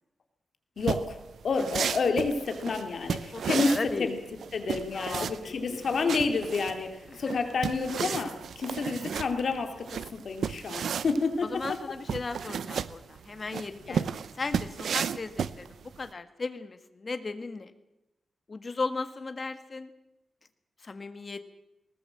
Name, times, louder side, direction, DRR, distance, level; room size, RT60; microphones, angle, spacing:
voice 1, 0.8-1.2 1.4-4.2 4.5-11.6 13.9-14.1, left 4 dB, 60° left, 6 dB, 2.8 m, -29 dB
sound 1, 0.8-16.1, right 7 dB, 85° right, 0.7 m, -34 dB
voice 2, 3.3-4.1 4.9-5.8 7.1-7.4 11.4-14.1 14.4-17.7 18.5-19.9 20.8-21.4, left 3 dB, 35° left, 10 dB, 1.6 m, -36 dB
19.5 x 19.0 x 7.7 m, 0.95 s
wide cardioid pair, 115°, 0 cm